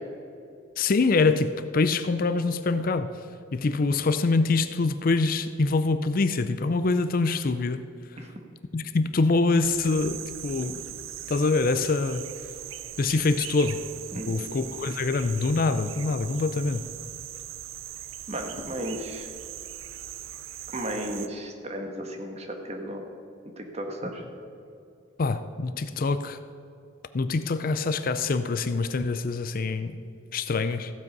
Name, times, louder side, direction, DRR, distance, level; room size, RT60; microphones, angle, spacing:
voice 1, 0.8-3.1 3.5-7.8 8.7-10.8 11.3-12.2 13.0-13.8 14.3-16.8 25.2-26.4 27.1-30.0 30.3-30.9, left 3 dB, 45° left, 11 dB, 0.5 m, -25 dB
sound 1, 9.6-21.3, right 11 dB, 85° right, 0.5 m, -40 dB
voice 2, 14.1-14.5 18.3-19.3 20.7-23.0 23.6-24.3, right 1 dB, 35° right, 3 dB, 1.4 m, -34 dB
15.0 x 8.1 x 5.4 m, 2.6 s
head